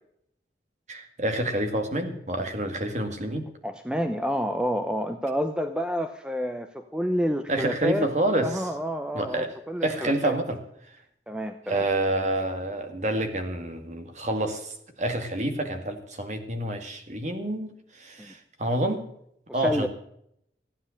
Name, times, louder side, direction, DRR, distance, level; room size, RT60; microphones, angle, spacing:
voice 1, 0.9-3.5 7.5-8.7 9.1-9.5 9.8-10.6 11.7-19.1 19.5-19.9, right 1 dB, 40° right, 6 dB, 2.1 m, -28 dB
voice 2, 3.6-8.1 8.4-10.3 11.3-11.9 18.2-18.3 19.6-19.9, equal, 5° right, 7 dB, 0.8 m, -29 dB
15.5 x 9.5 x 6.5 m, 0.72 s
head